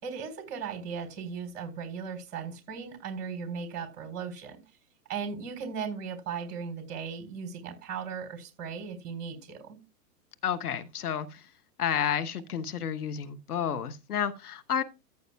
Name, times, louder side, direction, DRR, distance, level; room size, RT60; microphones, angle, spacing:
voice 1, 0.0-4.6 5.1-9.8, right 6 dB, 35° right, 4.1 m, -37 dB
voice 2, 10.4-11.5 11.8-14.8, left 8 dB, 70° left, 1.1 m, -31 dB
14.0 x 8.1 x 2.3 m
figure-of-eight pair, 110°, 47 cm